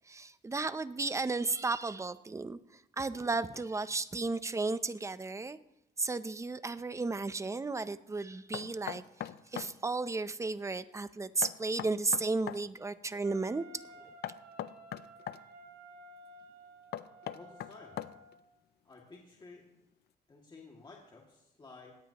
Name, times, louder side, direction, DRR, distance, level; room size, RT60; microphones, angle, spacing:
voice 1, 0.1-2.6 3.0-5.6 6.0-9.0 9.5-13.6, right 3 dB, 20° right, 13 dB, 0.6 m, -34 dB
Knock, 8.5-9.7 11.4-12.6 14.2-15.4 16.9-18.4, left 11 dB, 80° left, 0.6 m, -40 dB
Wind instrument woodwind instrument, 13.2-18.5, right 1 dB, 75° right, 2.0 m, -54 dB
voice 2, 17.3-18.0 18.8-19.7 20.3-22.0, left 3 dB, 30° left, -2 dB, 2.3 m, -53 dB
19.5 x 17.5 x 3.0 m, 0.87 s
cardioid pair, 135°, 16 cm